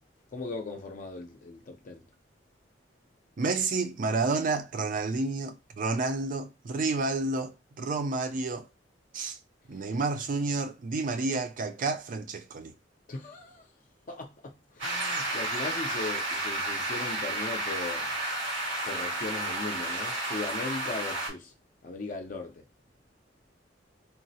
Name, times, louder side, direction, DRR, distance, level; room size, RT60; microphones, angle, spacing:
voice 1, 0.3-2.0 13.1-13.6 14.1-14.3 14.8-18.1 18.8-21.5 21.8-22.6, left 3 dB, 45° left, 0.5 m, -38 dB
voice 2, 3.4-8.7 9.1-9.4 9.7-12.7, right 3 dB, 45° right, 0.4 m, -30 dB
sound 1, 14.8-21.3, right 2 dB, 85° right, 1.6 m, -32 dB
3.7 x 2.0 x 2.7 m
head